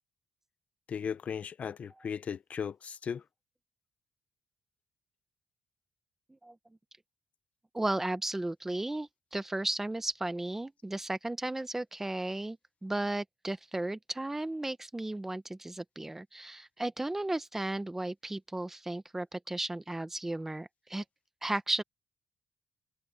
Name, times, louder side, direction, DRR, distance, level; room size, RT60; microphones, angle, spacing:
voice 1, 0.9-3.2, left 7 dB, 40° left, 0.7 m, -37 dB
voice 2, 7.7-21.0 21.4-21.8, right 2 dB, 10° right, 0.8 m, -35 dB
cardioid pair, 145°, 4 cm